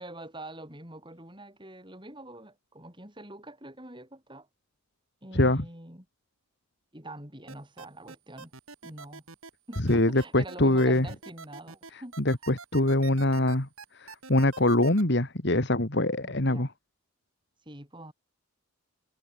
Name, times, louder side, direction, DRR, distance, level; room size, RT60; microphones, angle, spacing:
voice 1, 0.0-4.5 5.2-6.1 6.9-8.5 8.8-9.2 9.7-12.2 16.2-16.7 17.6-18.1, right 1 dB, 20° right, 7.9 m, -45 dB
voice 2, 5.3-5.6 9.9-11.1 11.9-13.7 13.9-16.7, left 1 dB, 55° left, 2.5 m, -24 dB
sound 1, 7.5-15.0, right 4 dB, 80° right, 6.7 m, -45 dB
head